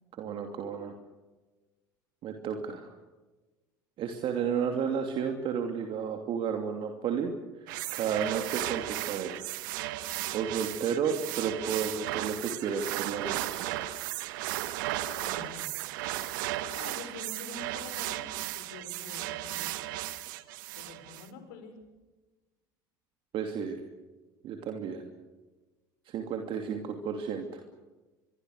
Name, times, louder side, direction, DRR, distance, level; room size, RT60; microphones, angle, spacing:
voice 1, 0.2-0.9 2.2-2.9 4.0-7.3 7.6-9.5 10.3-13.7 23.3-23.8 24.4-25.1 26.1-27.6, right 7 dB, 55° right, 4 dB, 2.8 m, -32 dB
sound 1, 7.7-21.3, right 16 dB, 75° right, 1.1 m, -35 dB
voice 2, 15.2-15.9 16.4-19.7 20.7-21.8, left 5 dB, 75° left, 7 dB, 5.3 m, -47 dB
25.5 x 23.5 x 6.6 m, 1.2 s
hypercardioid pair, 75°, 11 cm